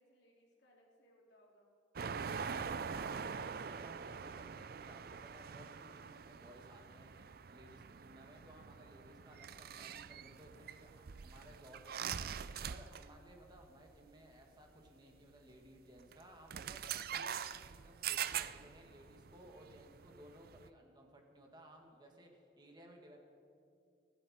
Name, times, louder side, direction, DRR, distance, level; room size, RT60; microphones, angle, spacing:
voice 1, 0.0-1.7, equal, 65° left, -2 dB, 3.2 m, -68 dB
sound 1, 2.0-13.3 13.5-13.8 14.9-15.0 16.0-16.2 16.5-20.7, right 7 dB, 50° right, 0.4 m, -44 dB
voice 2, 2.9-12.3 12.7-17.4 17.6-23.2, right 1 dB, 20° right, 1 dB, 2.0 m, -59 dB
24.5 x 11.5 x 4.4 m, 2.5 s
head